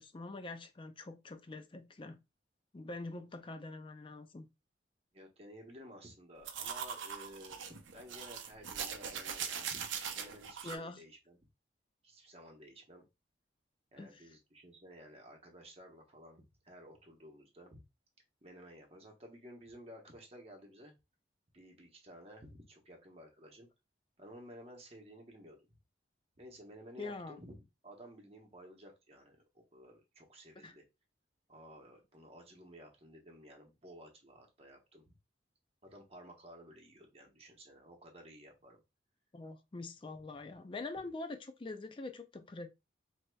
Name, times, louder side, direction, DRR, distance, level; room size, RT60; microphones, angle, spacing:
voice 1, 0.0-2.2 2.7-4.5 10.6-11.0 14.0-14.3 27.0-27.4 30.6-30.8 39.3-42.7, left 2 dB, 30° left, 0.4 m, -44 dB
voice 2, 5.1-7.6 7.9-9.8 10.1-11.4 12.0-13.0 13.9-17.8 18.4-20.9 21.5-23.7 24.2-25.6 26.4-27.6 27.8-30.8 31.5-35.1 35.8-38.8, equal, 35° right, 1.0 m, -54 dB
sound 1, 6.5-10.8, right 7 dB, 85° right, 0.6 m, -41 dB
4.7 x 2.7 x 2.2 m
head